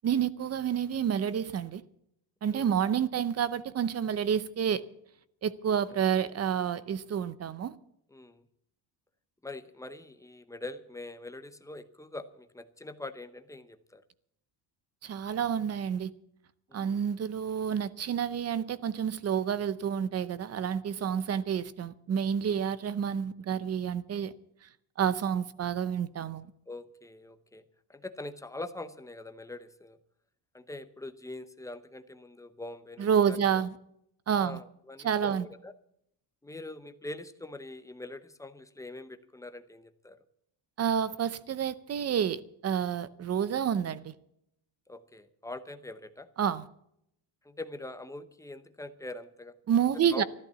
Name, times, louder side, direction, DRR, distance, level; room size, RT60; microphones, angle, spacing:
voice 1, 0.0-1.8 2.4-4.8 5.4-7.8 15.0-16.1 16.7-24.3 24.6-24.7 25.0-26.5 33.0-33.8 34.3-34.6 35.0-35.4 40.8-44.1 46.4-46.7 49.7-50.2, right 8 dB, 35° right, 0.7 m, -29 dB
voice 2, 5.9-6.3 8.1-8.4 9.4-14.0 16.7-17.0 21.1-21.2 26.7-27.6 27.9-30.0 30.5-33.7 34.4-35.7 36.4-40.2 44.9-46.3 47.4-49.6 50.1-50.2, left 2 dB, 5° left, 0.7 m, -43 dB
13.5 x 12.0 x 6.9 m
cardioid pair, 160°, 47 cm